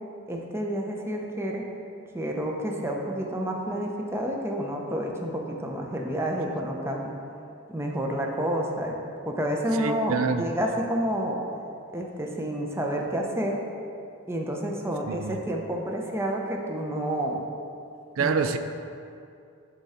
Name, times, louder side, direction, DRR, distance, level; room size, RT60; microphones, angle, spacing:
voice 1, 0.3-1.6 2.1-7.1 7.7-9.0 9.3-11.4 11.9-13.6 14.3-17.4 18.2-18.3, equal, 15° right, 0 dB, 0.7 m, -29 dB
voice 2, 9.8-10.4 15.1-15.4 18.2-18.6, right 5 dB, 90° right, 9 dB, 0.4 m, -26 dB
11.0 x 3.7 x 4.3 m, 2.6 s
head